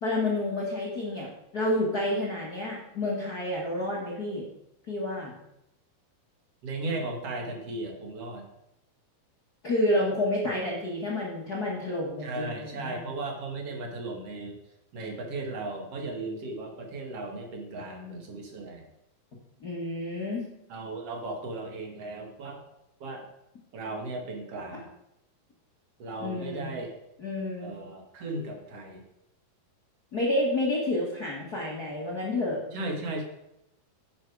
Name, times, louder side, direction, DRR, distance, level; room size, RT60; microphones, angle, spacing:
voice 1, 0.0-4.4 4.9-5.3 9.6-13.0 19.6-20.4 26.2-26.7 27.2-27.7 30.1-32.6, left 1 dB, 50° left, -4 dB, 1.1 m, -29 dB
voice 2, 6.6-8.5 12.2-14.6 14.9-18.8 20.7-22.6 23.0-23.3 23.7-24.9 26.0-26.9 27.6-29.0 32.7-33.2, right 2 dB, 50° right, 2 dB, 2.2 m, -36 dB
10.0 x 7.9 x 4.7 m, 0.85 s
omnidirectional pair, 4.3 m